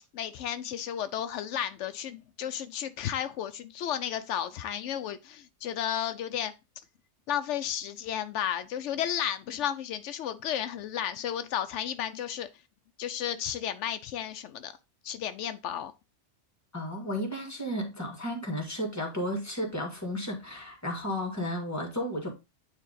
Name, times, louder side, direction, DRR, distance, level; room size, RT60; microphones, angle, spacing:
voice 1, 0.1-6.5 7.3-12.5 13.0-14.7 15.0-15.9, left 10 dB, 85° left, 0.9 m, -33 dB
voice 2, 16.7-22.3, equal, 15° left, 1.8 m, -33 dB
9.1 x 3.5 x 3.9 m
omnidirectional pair, 1.2 m